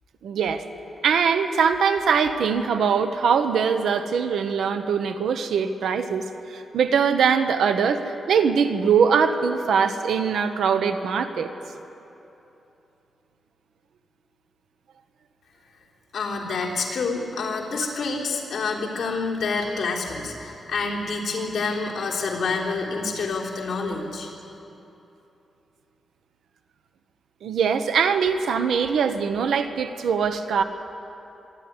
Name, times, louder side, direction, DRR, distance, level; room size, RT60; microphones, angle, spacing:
voice 1, 0.2-0.6 1.0-11.5 27.4-30.6, right 6 dB, 85° right, 8 dB, 1.1 m, -22 dB
voice 2, 16.1-24.3, left 4 dB, 55° left, -3 dB, 3.7 m, -28 dB
25.0 x 11.0 x 9.8 m, 3.0 s
wide cardioid pair, 155°, 0 cm